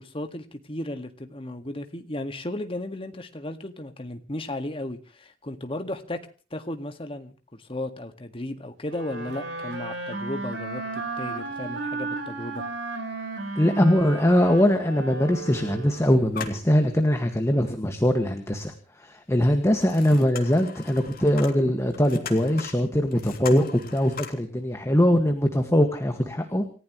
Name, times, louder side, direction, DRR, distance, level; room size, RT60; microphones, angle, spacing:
voice 1, 0.0-6.2 6.5-12.6 17.7-17.8, left 1 dB, 30° left, 7 dB, 1.9 m, -35 dB
sound 1, 8.9-16.3, right 3 dB, 85° right, 4.7 m, -34 dB
sound 2, 13.1-13.2 13.5-13.7 14.6-14.7 15.2-15.9 16.2-17.3 17.8-17.9 19.5-24.3, left 5 dB, 55° left, 3.0 m, -40 dB
voice 2, 13.6-18.7 19.0-26.6, equal, 15° left, 6 dB, 1.9 m, -22 dB
28.5 x 15.0 x 3.2 m, 0.37 s
head